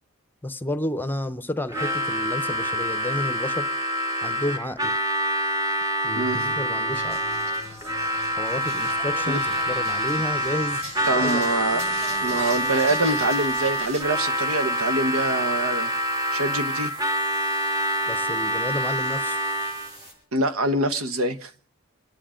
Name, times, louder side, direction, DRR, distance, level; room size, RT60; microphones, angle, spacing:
voice 1, 0.4-3.7 4.2-5.0 6.0-7.2 8.4-11.4 18.1-19.4, left 1 dB, 10° left, 0.7 m, -31 dB
Harmonica, 1.7-20.0, equal, 15° right, 1.3 m, -26 dB
sound 1, 6.1-20.1, left 2 dB, 60° right, 7.9 m, -45 dB
sound 2, 6.9-14.0, right 1 dB, 35° right, 6.9 m, -41 dB
voice 2, 11.0-15.9 16.3-16.9 17.2-17.3 20.3-21.5, right 2 dB, 80° right, 1.1 m, -25 dB
28.0 x 10.0 x 5.0 m
head